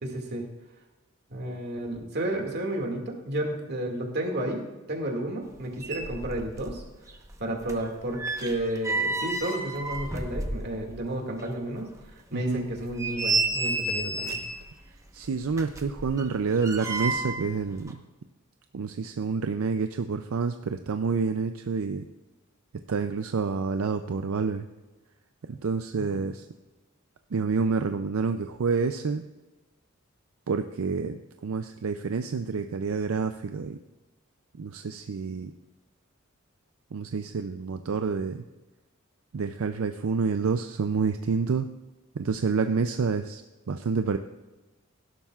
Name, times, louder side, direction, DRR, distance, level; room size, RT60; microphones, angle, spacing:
voice 1, 0.0-0.5 1.3-6.8 7.4-11.9 12.3-14.4 26.0-26.2, right 1 dB, 50° right, 1 dB, 2.1 m, -32 dB
sound 1, 5.5-5.6 5.8-6.8 7.1-11.0 11.4-11.5 12.0-12.1 12.7-14.6 15.5-17.5 17.8-17.9, right 3 dB, 15° right, 1.0 m, -31 dB
voice 2, 12.3-12.6 15.1-18.0 18.7-22.0 22.9-24.6 25.5-26.5 27.3-29.2 30.5-33.8 34.6-35.5 36.9-38.4 39.3-41.7 42.2-43.4 43.7-44.2, right 5 dB, 75° right, 8 dB, 0.5 m, -28 dB
16.5 x 11.5 x 2.4 m, 1.1 s
head